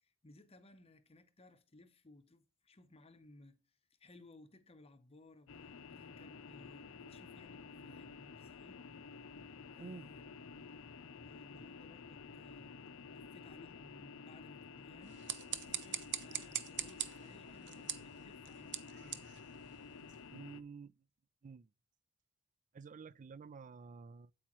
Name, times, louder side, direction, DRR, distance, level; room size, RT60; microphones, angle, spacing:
voice 1, 0.0-8.8 9.7-10.3 11.2-15.2 15.7-19.2, left 2 dB, 25° left, 0.8 m, -61 dB
sound 1, 5.5-20.6, left 5 dB, 65° left, 0.6 m, -52 dB
voice 2, 9.8-10.1 20.3-20.9 21.4-21.7 22.7-24.3, right 5 dB, 35° right, 0.4 m, -50 dB
sound 2, 15.0-20.3, right 10 dB, 55° right, 0.8 m, -44 dB
8.5 x 8.5 x 3.0 m
head